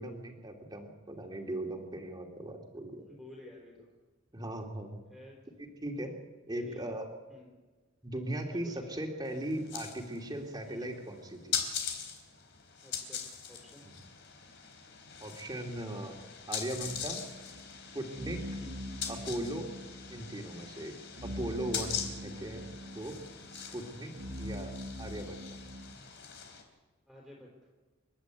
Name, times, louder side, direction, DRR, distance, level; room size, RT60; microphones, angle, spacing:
voice 1, 0.0-3.1 4.3-5.0 5.6-6.1 6.5-7.1 8.0-11.6 13.8-14.0 15.2-16.1 16.5-17.2 17.9-18.4 19.1-19.7 20.1-20.9 21.2-22.7 22.9-23.1 23.5-24.1 24.4-24.7 25.0-25.6, right 1 dB, 20° right, 2 dB, 2.9 m, -38 dB
voice 2, 3.0-3.9 5.1-5.4 6.6-6.8 7.3-7.5 8.5-9.1 10.7-10.9 12.8-14.0 18.6-18.9 27.1-27.7, left 1 dB, ahead, -2 dB, 3.9 m, -52 dB
sound 1, 9.3-26.6, left 7 dB, 60° left, 3.7 m, -42 dB
sound 2, 16.8-25.9, equal, 70° right, 2.0 m, -44 dB
28.5 x 11.5 x 8.2 m, 1.3 s
head